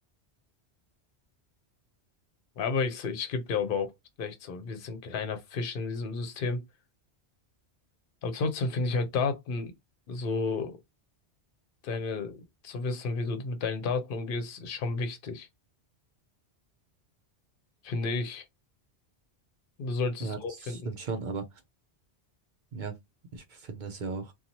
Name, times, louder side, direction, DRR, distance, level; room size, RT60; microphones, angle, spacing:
voice 1, 2.6-3.9 4.2-6.6 8.2-9.7 10.1-10.8 11.8-15.5 17.8-18.4 19.8-20.9, left 4 dB, 60° left, 0.8 m, -31 dB
voice 2, 20.2-21.6 22.7-22.9 23.3-24.3, right 4 dB, 55° right, 0.6 m, -37 dB
2.6 x 2.3 x 2.8 m
omnidirectional pair, 1.1 m